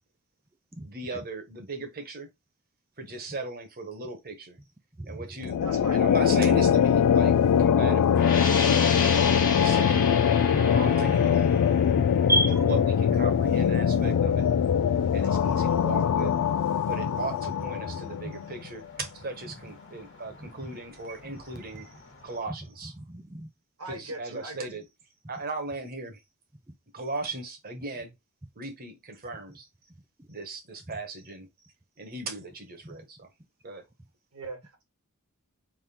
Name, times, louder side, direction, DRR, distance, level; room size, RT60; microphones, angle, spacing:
voice 1, 0.8-2.3 3.0-4.6 5.0-5.6 5.9-9.1 9.5-11.5 12.5-14.4 15.1-16.3 16.8-22.0 22.2-22.9 23.9-24.8 25.3-26.2 26.9-28.2 28.5-29.7 30.3-31.5 32.0-33.3 33.6-33.9, right 3 dB, 45° right, 1.2 m, -37 dB
sound 1, 5.4-18.5, left 8 dB, 90° left, 0.3 m, -22 dB
voice 2, 5.6-6.1 23.8-24.7 34.3-34.8, right 2 dB, 75° right, 1.8 m, -39 dB
sound 2, 8.0-22.4, left 3 dB, 55° left, 1.3 m, -51 dB
sound 3, 8.1-13.6, left 5 dB, 40° left, 1.3 m, -32 dB
voice 3, 8.7-9.6 10.0-10.1 10.5-10.7 11.0-11.1 11.9-12.7 13.5-13.6 16.2-16.3 18.2-18.3 20.3-20.5 22.5-22.6 22.8-23.5 30.2-30.3, right 1 dB, 10° right, 0.4 m, -32 dB
3.6 x 3.0 x 4.3 m
head